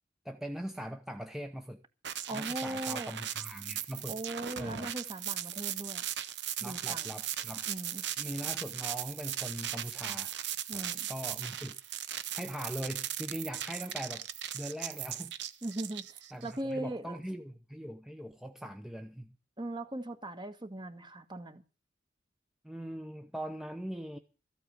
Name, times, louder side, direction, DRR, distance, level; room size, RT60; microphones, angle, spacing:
voice 1, 0.2-1.8 2.3-4.2 4.6-4.9 6.6-7.6 8.2-10.3 10.7-11.8 12.3-14.3 14.5-15.3 16.3-19.3 22.6-24.2, equal, ahead, 0.8 m, -41 dB
sound 1, 2.0-16.5, right 11 dB, 60° right, 0.9 m, -38 dB
voice 2, 2.3-3.1 4.1-6.0 6.6-7.1 7.7-8.1 10.7-11.1 15.6-17.2 19.6-21.6, right 1 dB, 25° right, 1.4 m, -39 dB
14.0 x 8.6 x 7.5 m
head